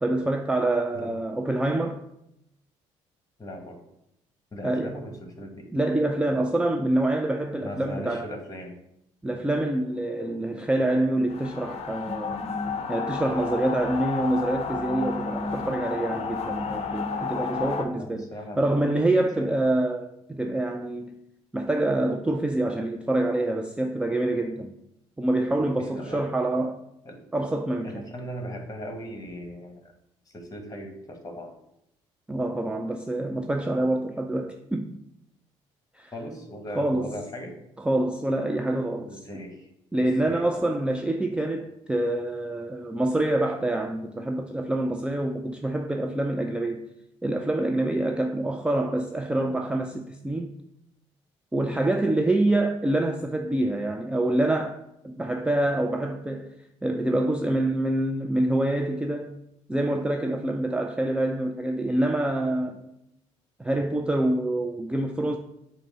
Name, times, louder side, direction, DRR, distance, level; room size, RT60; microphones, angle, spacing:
voice 1, 0.0-2.0 4.6-5.0 5.7-8.3 9.2-12.4 12.9-18.3 18.6-21.2 21.5-24.7 25.2-26.8 27.3-28.0 32.3-34.9 35.9-36.1 36.8-37.1 37.8-39.1 39.9-46.8 47.2-50.5 51.5-54.8 55.0-56.6 56.8-59.4 59.7-62.9 63.6-65.4, right 1 dB, 5° right, 0.4 m, -26 dB
voice 2, 3.4-3.8 4.5-5.7 7.6-8.8 18.0-18.6 19.4-19.5 25.8-26.2 27.0-27.2 27.8-29.9 30.3-31.5 36.1-37.5 39.1-39.7 40.0-40.6, equal, 25° left, 1.3 m, -38 dB
sound 1, 11.3-17.8, left 5 dB, 45° left, 0.6 m, -31 dB
4.9 x 2.1 x 4.6 m
hypercardioid pair, 55°, 15 cm